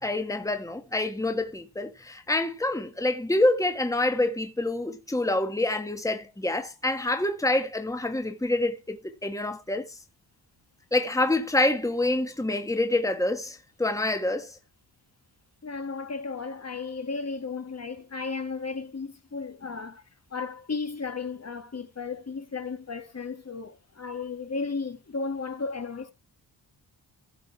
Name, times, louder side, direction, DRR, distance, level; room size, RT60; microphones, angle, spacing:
voice 1, 0.0-10.0 10.9-14.6, left 2 dB, 5° left, 1.8 m, -27 dB
voice 2, 15.6-20.0 20.3-26.1, left 4 dB, 35° left, 1.9 m, -34 dB
16.0 x 5.3 x 4.7 m
cardioid pair, 75°, 44 cm